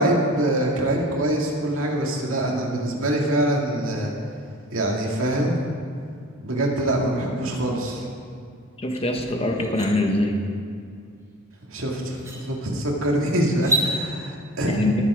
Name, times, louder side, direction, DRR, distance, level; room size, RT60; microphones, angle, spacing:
voice 1, 0.0-4.1 4.7-5.6 6.4-8.0 11.7-14.9, right 1 dB, 90° right, -1 dB, 2.2 m, -24 dB
voice 2, 8.8-10.4 14.6-15.0, left 1 dB, 30° left, 2 dB, 1.3 m, -23 dB
sound 1, 8.9-9.0 9.5-9.9 11.5-11.6 12.1-12.4 13.5-13.9, right 2 dB, 15° right, 1.9 m, -26 dB
20.5 x 7.3 x 5.0 m, 2.3 s
head